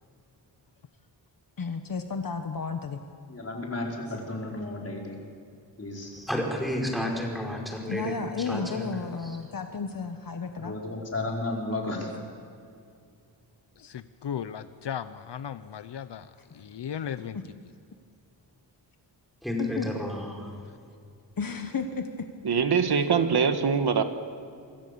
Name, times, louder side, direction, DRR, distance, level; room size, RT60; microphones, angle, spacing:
voice 1, 1.6-3.0 7.9-10.8 16.5-16.6 19.6-19.9 21.4-22.3 22.9-23.1, left 5 dB, 50° left, 6 dB, 1.3 m, -33 dB
voice 2, 3.3-5.2 5.8-6.2 10.6-12.1, left 2 dB, 35° left, -2 dB, 5.1 m, -33 dB
voice 3, 6.1-9.0 19.4-20.5, left 1 dB, ahead, -1 dB, 4.8 m, -31 dB
voice 4, 13.8-17.4, left 8 dB, 75° left, 12 dB, 0.8 m, -36 dB
voice 5, 22.4-24.0, right 6 dB, 60° right, 8 dB, 1.5 m, -23 dB
26.5 x 24.5 x 6.9 m, 2.4 s
wide cardioid pair, 160°, 43 cm